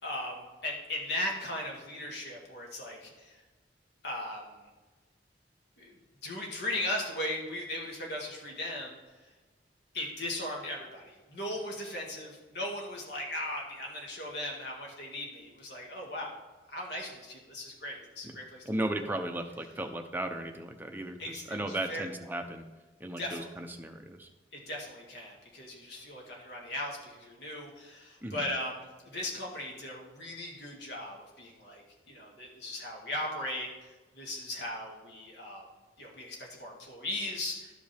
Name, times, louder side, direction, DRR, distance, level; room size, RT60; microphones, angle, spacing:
voice 1, 0.0-3.4 4.0-4.4 5.8-5.9 6.2-9.0 9.9-16.3 16.7-18.6 21.2-22.0 23.2-23.5 24.7-33.7 34.1-35.6 36.0-37.7, left 1 dB, 60° left, -1 dB, 2.0 m, -38 dB
voice 2, 18.6-22.7 23.0-24.3 28.2-28.5, right 1 dB, 10° right, 4 dB, 0.6 m, -36 dB
12.5 x 5.2 x 3.4 m, 1.3 s
head